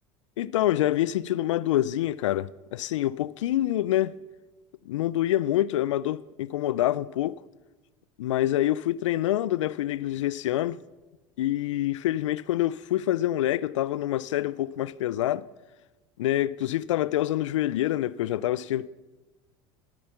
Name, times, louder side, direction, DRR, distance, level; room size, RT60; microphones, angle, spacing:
voice 1, 0.4-4.2 4.9-7.4 8.2-10.8 11.4-15.5 16.2-18.9, left 13 dB, 85° left, 0.4 m, -26 dB
13.0 x 12.5 x 5.7 m
hypercardioid pair, 80°, 15 cm